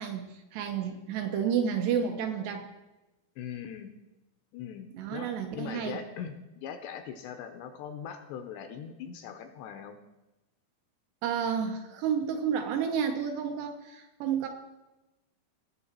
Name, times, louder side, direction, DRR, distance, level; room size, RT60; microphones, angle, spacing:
voice 1, 0.0-2.7 4.9-6.0 11.2-14.5, right 7 dB, 75° right, 4 dB, 2.7 m, -31 dB
voice 2, 3.4-3.9 4.5-5.3 5.5-10.0, left 8 dB, 80° left, 7 dB, 2.7 m, -40 dB
19.0 x 7.0 x 4.4 m, 1.0 s
omnidirectional pair, 5.3 m